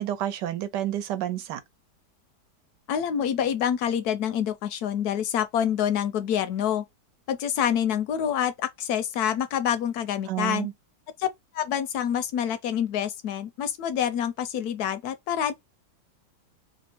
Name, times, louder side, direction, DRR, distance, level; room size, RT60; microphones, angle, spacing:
voice 1, 0.0-1.6 10.3-10.7, right 12 dB, 85° right, 1.3 m, -29 dB
voice 2, 2.9-6.8 7.3-10.7 11.2-11.3 11.5-15.5, left 9 dB, 75° left, 1.0 m, -27 dB
3.4 x 2.1 x 4.2 m
omnidirectional pair, 1.8 m